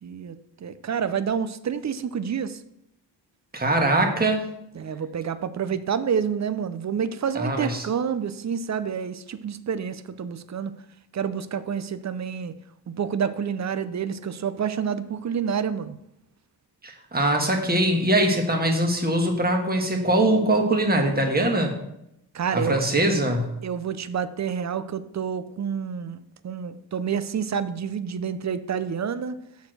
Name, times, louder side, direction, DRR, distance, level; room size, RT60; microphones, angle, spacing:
voice 1, 0.0-2.6 4.7-10.7 11.1-12.5 12.9-16.0 22.3-22.8 23.6-29.4, right 7 dB, 40° right, 13 dB, 0.5 m, -28 dB
voice 2, 3.5-4.4 7.3-7.8 16.8-21.7 22.5-23.5, right 1 dB, 20° right, 2 dB, 1.5 m, -22 dB
7.0 x 4.5 x 6.4 m, 0.82 s
cardioid pair, 100°, 43 cm